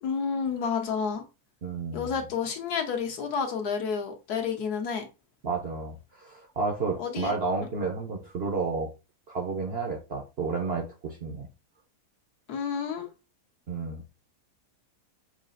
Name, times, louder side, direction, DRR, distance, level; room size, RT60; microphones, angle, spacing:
voice 1, 0.0-1.2 1.9-5.1 7.0-7.3 12.5-13.1, left 6 dB, 75° left, 1.4 m, -30 dB
voice 2, 1.6-2.2 5.4-8.9 9.3-11.5 13.7-14.0, right 4 dB, 55° right, 0.7 m, -31 dB
6.0 x 2.4 x 2.5 m
omnidirectional pair, 1.7 m